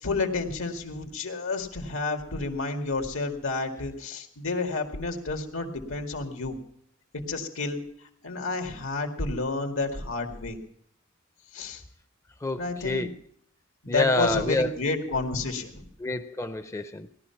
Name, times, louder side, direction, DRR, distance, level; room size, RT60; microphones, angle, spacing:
voice 1, 0.0-6.6 7.3-10.6 11.5-11.8 12.6-13.1 13.8-15.8, left 3 dB, 85° left, 4 dB, 2.1 m, -30 dB
voice 2, 12.4-13.1 13.9-14.7 16.0-17.1, left 2 dB, 15° left, 9 dB, 0.5 m, -27 dB
17.5 x 11.5 x 5.8 m, 0.69 s
head